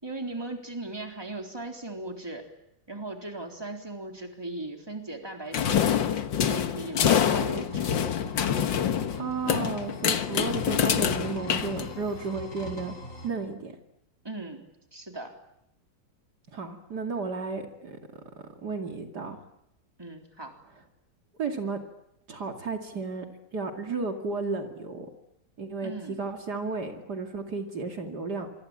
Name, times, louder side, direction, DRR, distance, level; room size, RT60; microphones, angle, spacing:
voice 1, 0.0-2.4 2.9-5.9 6.4-7.9 14.2-14.6 14.9-15.3 20.0-20.5 25.8-26.2, right 2 dB, 10° right, 3 dB, 3.8 m, -38 dB
sound 1, 5.5-12.3, left 8 dB, 85° left, 2.0 m, -26 dB
sound 2, 6.4-13.3, left 1 dB, 45° left, 6.9 m, -45 dB
voice 2, 9.2-12.9 13.2-13.7 16.5-18.0 18.6-19.4 21.4-21.8 22.3-23.3 23.5-25.1 25.6-28.5, right 4 dB, 60° right, 4 dB, 3.0 m, -33 dB
26.5 x 25.5 x 8.8 m, 0.81 s
omnidirectional pair, 2.0 m